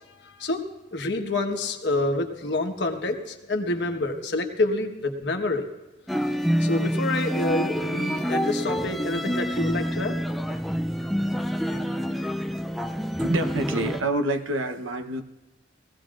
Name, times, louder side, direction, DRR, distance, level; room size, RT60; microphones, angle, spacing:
voice 1, 0.1-0.6 0.9-5.7 6.2-6.3 6.6-10.1, left 2 dB, 65° left, 3 dB, 1.3 m, -27 dB
sound 1, 6.1-14.0, equal, ahead, 0.4 m, -27 dB
voice 2, 13.2-15.2, right 2 dB, 90° right, 8 dB, 0.9 m, -27 dB
21.0 x 16.5 x 2.5 m, 1.1 s
head